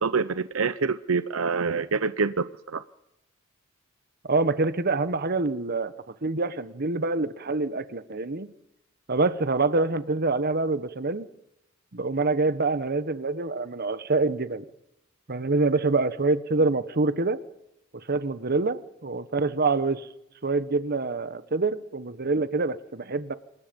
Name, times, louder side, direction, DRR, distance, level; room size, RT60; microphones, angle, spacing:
voice 1, 0.0-2.8, right 4 dB, 80° right, 13 dB, 0.7 m, -26 dB
voice 2, 4.2-5.9 6.2-8.5 9.1-11.3 11.9-14.6 15.3-17.4 17.9-20.1 20.4-23.3, right 3 dB, 50° right, 13 dB, 1.2 m, -26 dB
27.0 x 20.5 x 5.3 m, 0.85 s
head